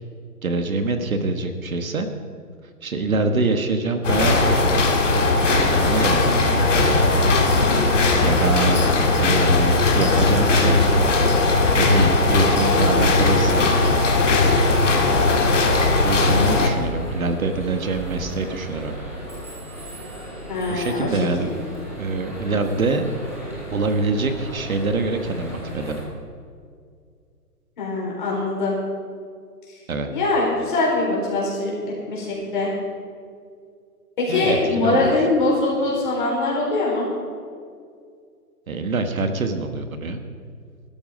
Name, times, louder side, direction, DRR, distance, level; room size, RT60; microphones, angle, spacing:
voice 1, 0.4-2.1 2.8-5.0 5.6-7.1 7.6-8.8 9.1-10.9 11.8-13.7 15.7-19.0 20.7-21.5 22.0-23.1 23.7-26.0 29.9-30.1 34.3-35.3 38.7-40.2, right 3 dB, 60° right, 7 dB, 1.4 m, -25 dB
sound 1, 4.0-16.7, left 3 dB, 50° left, 2.1 m, -18 dB
sound 2, 12.7-26.0, equal, 10° right, 1.0 m, -35 dB
voice 2, 20.5-21.6 27.8-28.7 29.7-29.8 30.1-32.7 34.2-37.1, left 2 dB, 30° left, -4 dB, 4.7 m, -23 dB
16.5 x 13.0 x 5.2 m, 2.2 s
hypercardioid pair, 180°, 47 cm